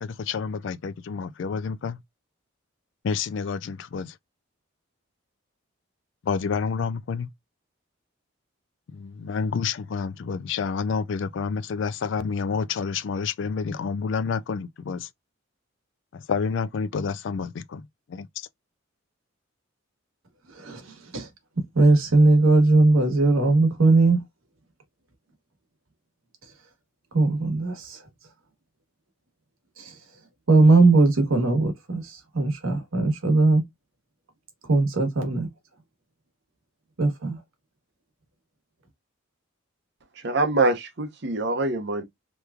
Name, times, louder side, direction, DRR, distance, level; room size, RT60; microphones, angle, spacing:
voice 1, 0.0-2.0 3.0-4.1 6.3-7.3 8.9-15.1 16.3-17.8 18.1-18.3, left 5 dB, 60° left, 0.3 m, -29 dB
voice 2, 20.5-21.3 21.7-24.2 27.1-28.0 29.8-29.9 30.5-33.6 34.7-35.5 37.0-37.4, right 3 dB, 80° right, 1.1 m, -19 dB
voice 3, 40.2-42.0, right 2 dB, 55° right, 0.8 m, -24 dB
3.4 x 3.0 x 2.3 m
head